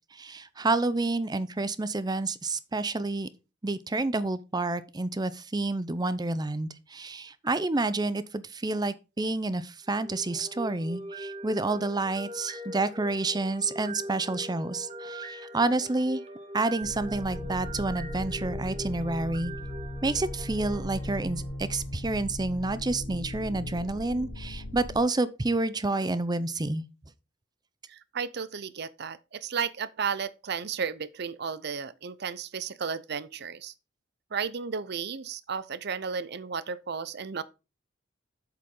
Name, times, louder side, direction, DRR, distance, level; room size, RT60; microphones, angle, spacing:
voice 1, 0.1-3.3 3.6-16.2 16.5-19.5 20.0-26.8, right 2 dB, 20° right, 0.6 m, -29 dB
sound 1, 9.9-22.0, right 1 dB, 35° right, 1.4 m, -42 dB
sound 2, 16.8-25.0, left 1 dB, 80° left, 1.2 m, -38 dB
voice 2, 27.9-33.7 34.3-37.4, right 6 dB, 60° right, 0.6 m, -33 dB
8.1 x 7.7 x 3.8 m
head